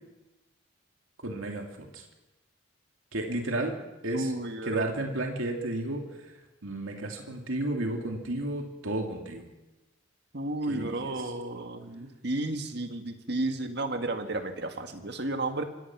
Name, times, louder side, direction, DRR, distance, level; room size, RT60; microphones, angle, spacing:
voice 1, 1.2-2.0 3.1-3.7 4.0-4.3 4.6-6.3 6.6-9.5 10.7-10.9, right 1 dB, 80° right, 2 dB, 2.7 m, -32 dB
voice 2, 4.1-5.0 10.3-15.6, right 2 dB, 55° right, 6 dB, 1.9 m, -32 dB
25.0 x 17.5 x 6.1 m, 1.1 s
head